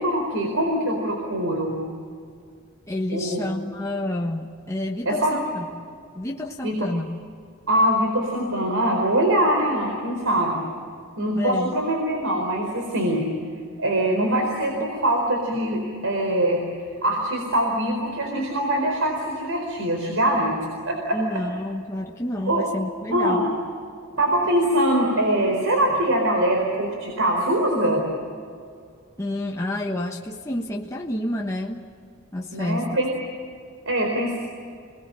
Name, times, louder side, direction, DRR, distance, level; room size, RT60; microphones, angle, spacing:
voice 1, 0.0-1.7 3.1-3.4 5.1-5.3 6.6-6.7 7.7-10.6 11.2-13.2 13.8-16.6 17.0-20.6 20.9-21.4 22.5-22.6 23.1-23.5 24.2-28.0 32.5-33.1 33.9-34.4, right 1 dB, 85° right, 1 dB, 4.4 m, -23 dB
voice 2, 2.9-5.9 6.1-7.2 11.4-11.8 21.1-23.5 29.2-31.9 32.3-33.0, left 1 dB, 15° left, -1 dB, 1.3 m, -29 dB
28.5 x 20.5 x 8.9 m, 2.3 s
head